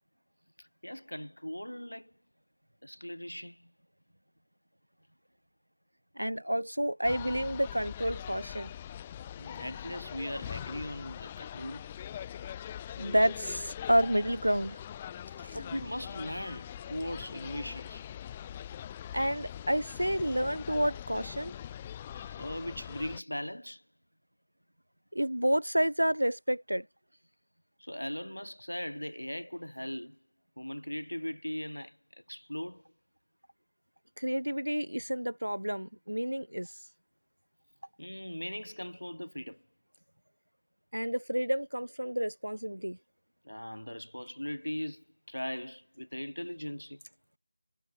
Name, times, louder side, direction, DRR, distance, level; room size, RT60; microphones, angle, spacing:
voice 1, 0.8-2.1 2.8-3.7 9.4-11.9 15.5-18.0 22.1-23.8 27.8-30.2 30.6-32.0 32.3-32.8 38.0-39.6 43.4-47.0, equal, 80° left, 0.7 m, -39 dB
voice 2, 6.2-8.7 13.0-14.8 15.4-15.6 19.1-21.5 25.1-26.9 34.2-36.7 40.9-43.0, equal, 80° right, 1.1 m, -30 dB
sound 1, 7.0-23.2, left 10 dB, 15° left, 0.6 m, -42 dB
figure-of-eight pair, 165°, 0 cm